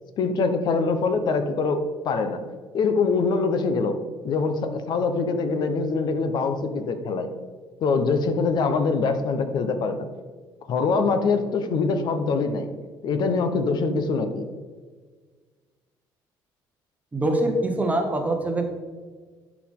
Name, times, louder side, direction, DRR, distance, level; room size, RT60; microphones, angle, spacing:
voice 1, 0.2-2.4 2.7-4.0 4.2-7.3 7.8-10.1 10.7-12.7 13.0-14.5, left 4 dB, 55° left, 8 dB, 0.9 m, -24 dB
voice 2, 17.1-18.6, right 1 dB, 15° right, 4 dB, 1.0 m, -24 dB
11.0 x 4.9 x 3.7 m, 1.5 s
cardioid pair, 120°, 9 cm